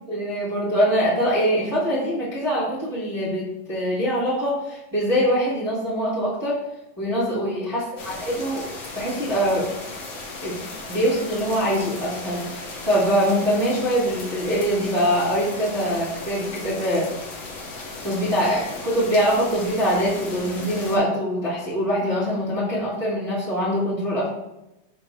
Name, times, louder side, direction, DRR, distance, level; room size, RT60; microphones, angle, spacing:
voice 1, 0.1-6.6 7.0-8.7 8.9-9.7 10.4-17.1 18.0-24.3, equal, 10° right, -10 dB, 2.6 m, -23 dB
sound 1, 8.0-21.0, left 3 dB, 55° left, 2.4 m, -36 dB
13.0 x 4.4 x 2.8 m, 0.92 s
omnidirectional pair, 3.7 m